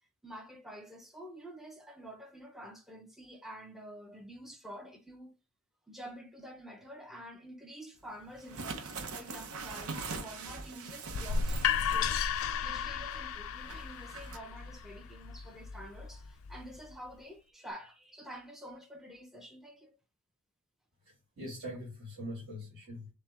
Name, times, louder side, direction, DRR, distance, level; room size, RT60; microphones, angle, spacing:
voice 1, 0.2-5.4 5.9-12.2 12.6-20.0, equal, ahead, 0.7 m, -48 dB
sound 1, 8.3-12.4 12.7-12.8 13.6-14.4, right 4 dB, 80° right, 0.8 m, -42 dB
sound 2, 11.1-16.9, left 7 dB, 65° left, 0.3 m, -34 dB
voice 2, 21.1-23.1, equal, 45° right, 2.0 m, -43 dB
6.5 x 2.2 x 3.3 m
head